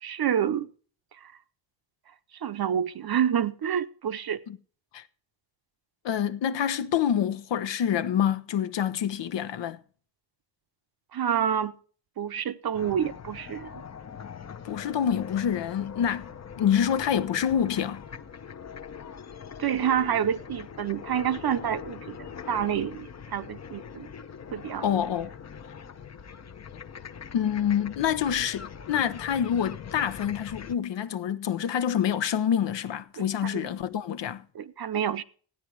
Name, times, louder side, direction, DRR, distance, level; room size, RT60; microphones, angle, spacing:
voice 1, 0.0-0.7 1.2-1.3 2.4-4.4 11.1-11.7 12.2-13.7 19.6-24.1 24.5-24.9 33.2-33.7 34.5-35.2, right 9 dB, 55° right, 0.8 m, -28 dB
voice 2, 6.0-9.8 14.6-16.3 16.6-18.0 24.8-25.3 27.3-34.4, left 9 dB, 70° left, 0.8 m, -27 dB
sound 1, 12.7-30.7, left 7 dB, 35° left, 0.8 m, -42 dB
15.0 x 9.5 x 4.7 m
cardioid pair, 105°, 44 cm